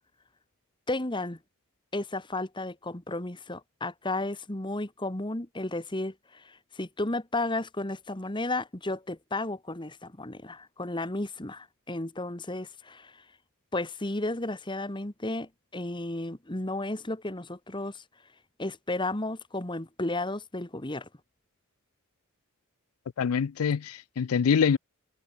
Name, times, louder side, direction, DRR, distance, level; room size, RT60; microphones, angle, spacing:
voice 1, 0.9-1.4 1.9-13.2 13.7-18.0 18.6-21.1, left 2 dB, 20° left, 1.6 m, -33 dB
voice 2, 23.2-24.8, left 6 dB, 80° left, 0.4 m, -25 dB
head